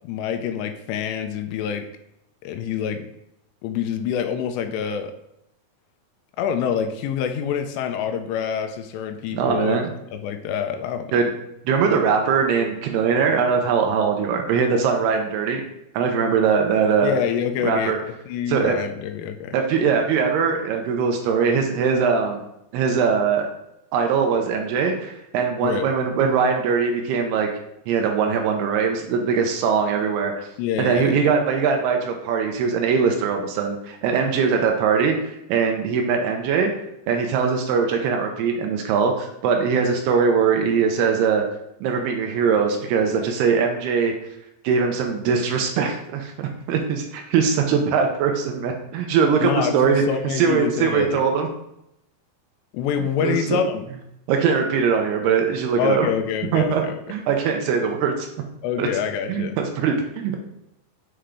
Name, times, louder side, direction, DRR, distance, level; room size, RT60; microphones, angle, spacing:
voice 1, 0.0-1.9 2.4-3.1 3.6-5.1 6.4-9.8 10.1-11.1 17.0-19.5 25.6-25.9 30.6-31.2 49.4-51.2 52.7-53.9 55.8-57.0 58.6-59.6, left 7 dB, 90° left, 7 dB, 2.8 m, -26 dB
voice 2, 9.3-9.9 11.1-11.3 11.7-15.6 15.9-17.1 17.6-18.0 18.5-18.8 19.5-22.4 22.7-23.5 23.9-27.5 27.9-30.5 30.8-36.7 37.1-41.4 41.8-44.1 44.6-51.5 53.2-53.6 54.3-56.1 56.5-56.8 57.1-58.3 58.8-58.9 59.3-60.4, right 6 dB, 80° right, 3 dB, 2.5 m, -21 dB
7.7 x 3.7 x 3.4 m, 0.82 s
omnidirectional pair, 4.9 m